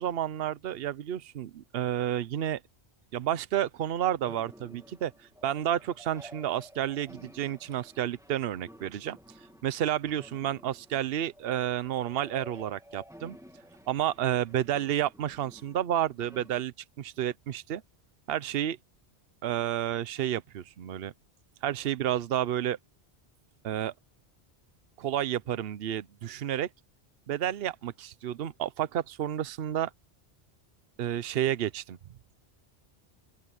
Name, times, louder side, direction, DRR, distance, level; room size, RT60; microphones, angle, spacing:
voice 1, 0.0-2.6 3.1-5.1 5.4-9.2 9.6-13.4 13.9-17.8 18.3-18.8 19.4-21.1 21.6-22.8 23.6-23.9 25.0-26.7 27.3-29.9 31.0-32.0, right 11 dB, 65° right, 0.9 m, -30 dB
sound 1, 4.2-16.6, equal, 5° right, 1.6 m, -52 dB
open air
omnidirectional pair, 1.1 m